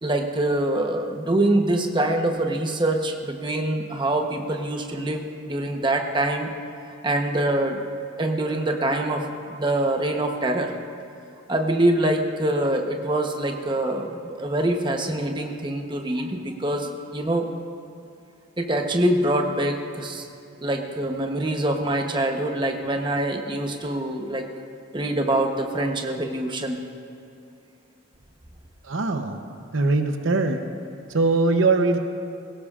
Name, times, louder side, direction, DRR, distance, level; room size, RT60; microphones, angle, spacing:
voice 1, 0.0-6.5 7.0-7.8 8.2-10.7 11.5-17.5 18.6-20.3 20.6-24.5 24.9-26.8, right 1 dB, 25° right, 3 dB, 0.9 m, -24 dB
voice 2, 28.9-29.4 29.7-30.6 31.1-32.0, right 3 dB, 70° right, 6 dB, 0.8 m, -21 dB
21.0 x 17.5 x 2.5 m, 2.5 s
head